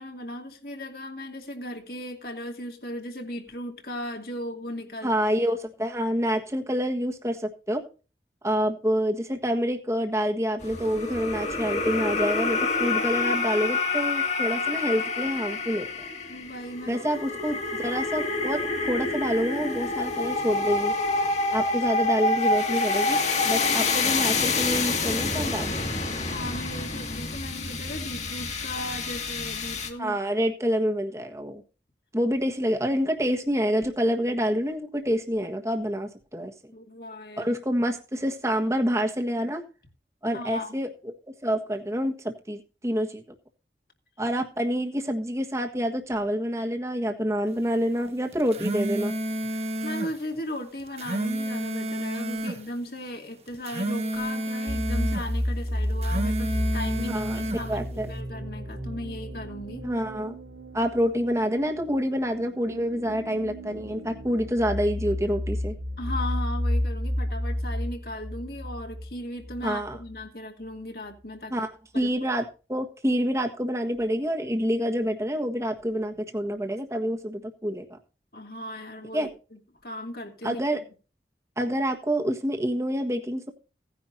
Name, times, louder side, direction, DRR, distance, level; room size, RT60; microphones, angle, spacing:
voice 1, 0.0-5.1 16.3-17.0 26.2-30.2 36.7-37.5 40.3-40.7 49.5-59.9 66.0-71.7 71.9-72.1 78.3-80.6, left 1 dB, 55° left, 2 dB, 2.5 m, -37 dB
voice 2, 5.0-7.8 8.4-15.9 16.9-20.9 21.5-25.7 30.0-31.6 32.1-36.5 37.4-39.6 40.2-41.1 41.4-43.2 44.2-49.1 57.0-58.1 59.8-60.4 60.7-65.8 69.6-70.0 71.5-72.4 72.7-78.0 79.1-79.3 80.4-80.8 81.6-83.5, equal, 15° right, 4 dB, 1.5 m, -27 dB
sound 1, 10.6-29.9, left 3 dB, 40° left, 2.1 m, -27 dB
sound 2, 48.3-50.1 50.8-52.6 53.5-55.3 55.9-57.6, right 1 dB, 35° right, 1.2 m, -30 dB
sound 3, 54.7-70.2, left 1 dB, 75° right, 4.0 m, -32 dB
17.5 x 10.0 x 2.7 m, 0.33 s
head